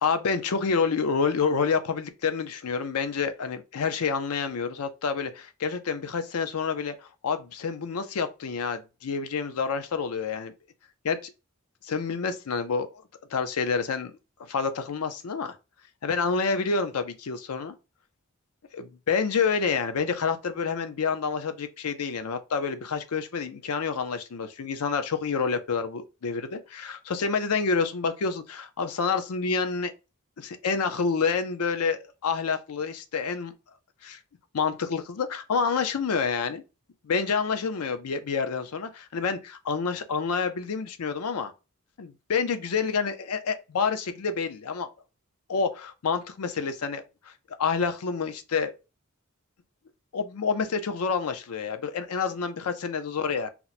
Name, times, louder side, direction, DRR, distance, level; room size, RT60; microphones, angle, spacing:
voice 1, 0.0-6.9 7.2-10.5 11.0-11.3 11.8-13.0 13.3-14.1 14.5-15.6 16.0-17.7 18.7-29.9 30.4-33.5 34.0-34.2 34.5-36.6 37.0-41.5 42.0-44.9 45.5-47.0 47.6-48.7 50.1-53.5, left 5 dB, 90° left, 0.5 m, -28 dB
2.9 x 2.1 x 3.9 m
head